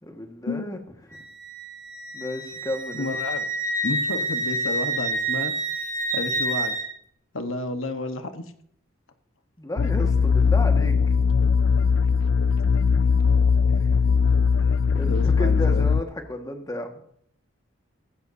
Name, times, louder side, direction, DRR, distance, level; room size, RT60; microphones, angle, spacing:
voice 1, 0.0-0.8 2.1-3.1 9.6-11.0 13.8-13.9 14.9-17.0, left 1 dB, 20° left, 4 dB, 1.7 m, -33 dB
Wind instrument woodwind instrument, 1.1-6.9, right 2 dB, 40° right, 2.6 m, -28 dB
voice 2, 2.9-3.5 3.8-6.8 7.3-8.4 15.1-15.9, left 2 dB, 85° left, 8 dB, 1.3 m, -31 dB
sound 1, 9.8-16.0, left 5 dB, 65° left, 0.4 m, -20 dB
17.5 x 15.5 x 2.8 m, 0.67 s
head